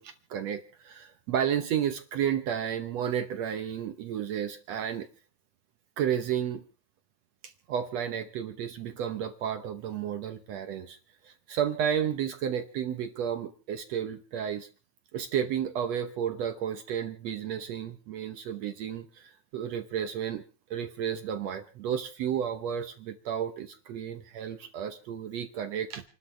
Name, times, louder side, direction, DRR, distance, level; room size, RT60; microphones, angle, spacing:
voice 1, 0.0-5.1 6.0-6.6 7.4-11.0 11.2-14.7 15.1-20.4 20.7-26.0, right 9 dB, 70° right, 8 dB, 1.7 m, -32 dB
29.0 x 12.5 x 3.4 m, 0.35 s
omnidirectional pair, 4.1 m